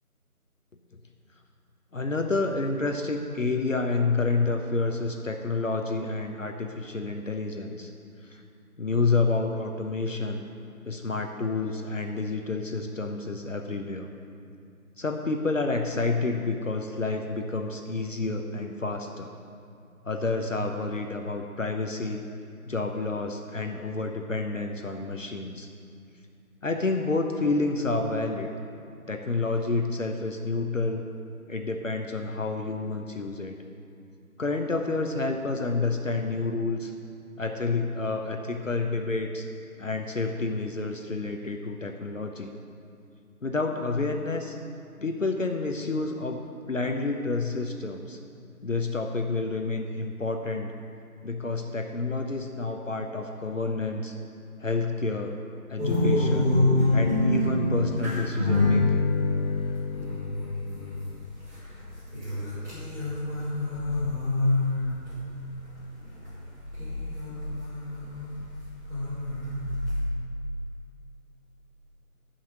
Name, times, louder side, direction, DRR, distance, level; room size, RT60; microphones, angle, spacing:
voice 1, 1.9-7.9 8.2-8.4 8.8-10.4 10.8-14.1 15.0-19.3 20.0-22.2 22.6-25.7 26.6-28.5 29.1-31.0 31.5-33.6 34.4-36.9 37.4-39.4 39.8-42.5 43.4-44.6 45.0-46.4 46.7-48.2 48.6-50.7 51.2-54.1 54.6-55.4 55.7-56.6 56.9-59.1, left 3 dB, 60° left, 4 dB, 0.9 m, -29 dB
sound 1, 55.8-70.0, left 2 dB, 15° right, 3.0 m, -27 dB
12.5 x 5.7 x 6.4 m, 2.5 s
figure-of-eight pair, 170°, 44 cm